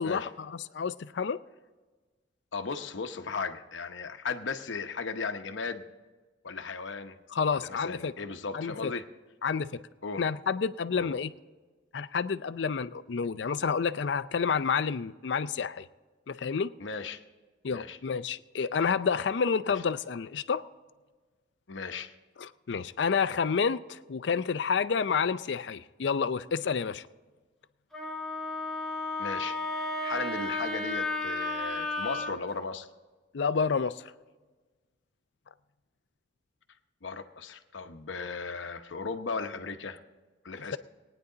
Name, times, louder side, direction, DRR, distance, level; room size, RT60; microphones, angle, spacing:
voice 1, 0.0-1.4 7.3-8.1 8.5-8.9 9.4-9.8 10.2-11.3 11.9-15.8 16.3-16.7 17.6-20.6 22.4-27.0 33.3-34.0, left 6 dB, 70° left, 14 dB, 0.5 m, -29 dB
voice 2, 2.5-5.8 6.4-7.2 7.5-9.1 10.0-10.2 11.0-11.1 16.8-17.2 17.7-18.0 21.7-22.1 29.2-32.9 37.0-40.0 40.4-40.8, left 4 dB, 85° left, 7 dB, 0.9 m, -36 dB
Wind instrument woodwind instrument, 27.9-32.3, left 2 dB, 5° left, 1.0 m, -33 dB
19.0 x 9.7 x 3.9 m, 1.3 s
head